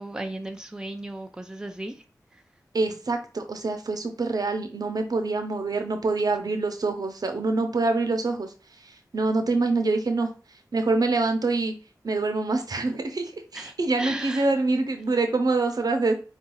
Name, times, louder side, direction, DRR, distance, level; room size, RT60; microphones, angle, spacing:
voice 1, 0.0-2.0 13.5-14.5, right 1 dB, 10° right, 0.5 m, -35 dB
voice 2, 2.7-8.5 8.9-10.3 10.7-11.7 12.0-16.1, right 3 dB, 70° right, 0.8 m, -25 dB
4.8 x 2.7 x 3.9 m
wide cardioid pair, 80°, 7 cm